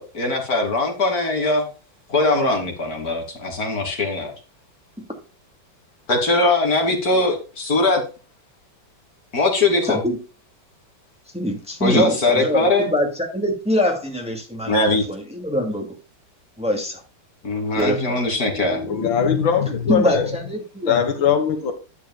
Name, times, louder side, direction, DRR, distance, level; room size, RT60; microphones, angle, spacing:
voice 1, 0.0-1.6 2.1-4.3 6.1-8.0 9.3-10.0 11.8-12.9 14.7-15.0 17.4-18.8, left 2 dB, 50° left, 2 dB, 3.0 m, -20 dB
voice 2, 9.9-10.2 11.3-15.9 16.6-17.0 17.8-18.2 19.9-21.0, left 1 dB, 5° right, 1 dB, 2.2 m, -24 dB
voice 3, 18.5-20.3 20.8-21.7, left 7 dB, 80° left, 7 dB, 2.1 m, -21 dB
11.5 x 8.5 x 2.3 m, 0.32 s
omnidirectional pair, 2.1 m